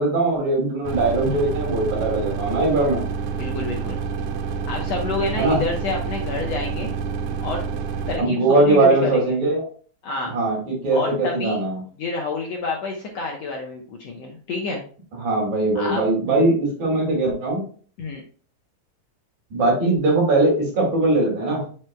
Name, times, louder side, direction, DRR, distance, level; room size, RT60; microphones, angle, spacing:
voice 1, 0.0-3.0 5.4-5.6 8.2-9.7 10.3-11.8 15.2-17.6 19.5-21.6, right 2 dB, 55° right, -2 dB, 3.7 m, -20 dB
sound 1, 0.8-8.2, right 6 dB, 85° right, 2.4 m, -28 dB
voice 2, 3.3-4.0 4.7-6.9 7.4-7.6 8.1-9.4 10.0-10.3 10.9-11.6 12.0-14.8 15.8-16.1 18.0-18.2, left 3 dB, 70° left, 0 dB, 1.7 m, -28 dB
7.7 x 7.3 x 2.2 m, 0.42 s
omnidirectional pair, 4.0 m